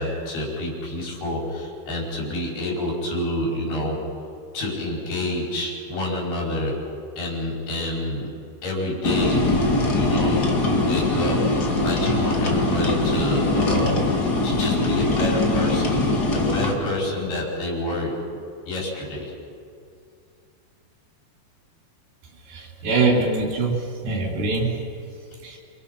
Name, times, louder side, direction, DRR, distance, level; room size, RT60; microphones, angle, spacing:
voice 1, 0.0-4.0 4.5-8.3 8.6-11.4 11.8-16.0 16.3-18.4 18.7-19.3, left 1 dB, 85° left, -3 dB, 7.6 m, -28 dB
sound 1, 9.0-16.7, left 2 dB, 35° left, 1.8 m, -22 dB
voice 2, 22.5-23.8 24.0-24.7 25.4-25.6, right 3 dB, 75° right, 0 dB, 5.8 m, -23 dB
28.0 x 26.0 x 5.7 m, 2.3 s
omnidirectional pair, 4.5 m